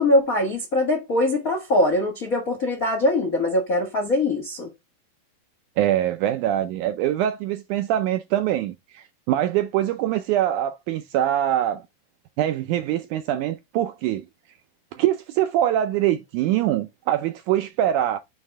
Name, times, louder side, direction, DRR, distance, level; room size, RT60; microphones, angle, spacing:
voice 1, 0.0-4.7, left 1 dB, 85° left, 0.7 m, -22 dB
voice 2, 5.8-11.8 12.4-14.2 14.9-18.2, right 12 dB, 80° right, 1.8 m, -23 dB
8.5 x 3.7 x 3.3 m
omnidirectional pair, 4.1 m